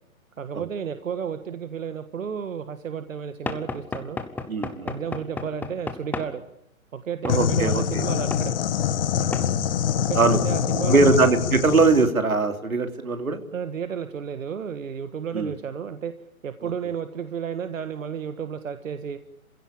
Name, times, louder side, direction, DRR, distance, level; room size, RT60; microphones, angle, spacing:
voice 1, 0.4-4.2 4.8-6.4 6.9-8.5 10.0-11.2 13.5-16.1 16.4-19.2, right 7 dB, 65° right, 10 dB, 1.7 m, -32 dB
Knock / Wood, 3.5-6.3 7.2-7.4 8.3-8.5 9.3-9.5, left 3 dB, 5° left, 1.0 m, -33 dB
voice 2, 4.5-4.9 7.2-8.0 9.1-9.4 10.1-10.4 10.9-13.4 15.3-15.5 16.6-16.7, right 3 dB, 85° right, 7 dB, 3.1 m, -21 dB
sound 1, 7.3-12.1, left 9 dB, 40° left, 1.9 m, -24 dB
27.0 x 16.5 x 8.8 m, 0.85 s
hypercardioid pair, 135°, 42 cm